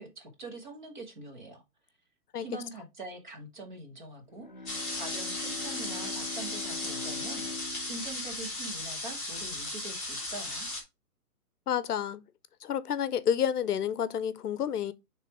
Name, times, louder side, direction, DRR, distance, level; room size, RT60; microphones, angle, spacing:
voice 1, 0.0-1.6 2.4-10.7, right 3 dB, 30° right, 1.2 m, -44 dB
Bowed string instrument, 4.3-9.7, left 5 dB, 35° left, 0.5 m, -43 dB
sound 1, 4.7-10.8, left 2 dB, ahead, 1.3 m, -36 dB
voice 2, 11.7-12.2 12.6-14.9, left 9 dB, 75° left, 0.7 m, -29 dB
6.0 x 3.4 x 4.6 m
hypercardioid pair, 175°, 47 cm